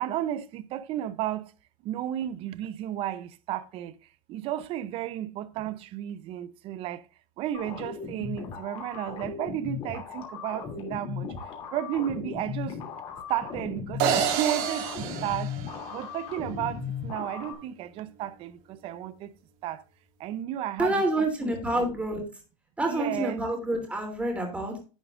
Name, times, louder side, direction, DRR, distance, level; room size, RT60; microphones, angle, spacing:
voice 1, 0.0-1.5 1.8-3.9 4.3-7.1 7.4-11.3 11.7-12.8 13.3-15.5 15.9-19.3 19.6-19.8 20.2-21.9 22.8-23.5, right 12 dB, 35° right, 0.7 m, -33 dB
sound 1, 7.5-17.5, left 6 dB, 30° left, 2.9 m, -37 dB
sound 2, 14.0-16.3, right 8 dB, 50° right, 2.0 m, -29 dB
voice 2, 20.8-22.2 22.8-24.8, right 1 dB, 5° right, 3.1 m, -28 dB
10.5 x 9.5 x 2.5 m
supercardioid pair, 155°, 17 cm